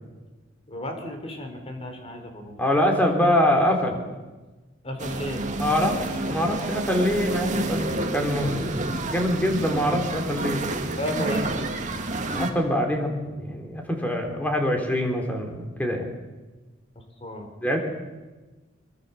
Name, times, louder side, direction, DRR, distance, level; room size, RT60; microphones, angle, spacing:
voice 1, 0.7-2.6 4.8-5.4 11.0-11.8 17.2-17.5, equal, 30° left, 4 dB, 4.1 m, -33 dB
voice 2, 2.6-4.1 5.6-10.6 12.3-16.1 17.6-17.8, equal, 10° left, 3 dB, 3.7 m, -24 dB
sound 1, 5.0-12.5, right 2 dB, 40° right, 2.2 m, -29 dB
23.5 x 23.0 x 7.1 m, 1.2 s
head